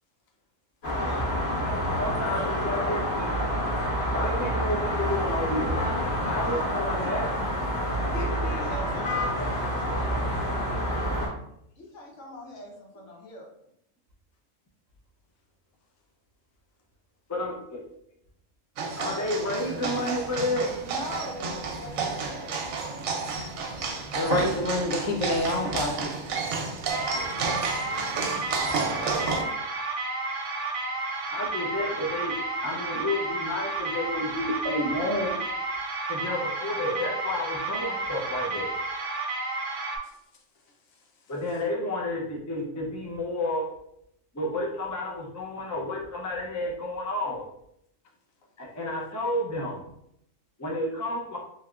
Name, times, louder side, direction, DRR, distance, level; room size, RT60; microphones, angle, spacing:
sound 1, 0.8-11.3, equal, 50° left, 1.6 m, -28 dB
voice 1, 2.0-3.4 4.1-5.8 6.2-7.3 7.6-7.7 9.4-9.5 17.3-17.8 19.0-20.7 31.3-35.4 36.1-38.7 41.3-43.6 44.3-47.4 48.6-49.8 50.6-51.4, left 1 dB, 30° left, -2 dB, 0.3 m, -30 dB
voice 2, 6.4-6.7 7.0-7.1 8.1-10.8 11.7-13.5 20.8-22.6, left 2 dB, 70° left, -1 dB, 1.1 m, -40 dB
sound 2, 18.8-29.4, right 4 dB, 90° right, 1.0 m, -31 dB
voice 3, 24.1-26.1, left 1 dB, 90° left, 1 dB, 1.1 m, -27 dB
sound 3, 26.9-40.0, right 3 dB, 55° right, 0.6 m, -32 dB
3.4 x 2.9 x 2.4 m, 0.75 s
omnidirectional pair, 1.4 m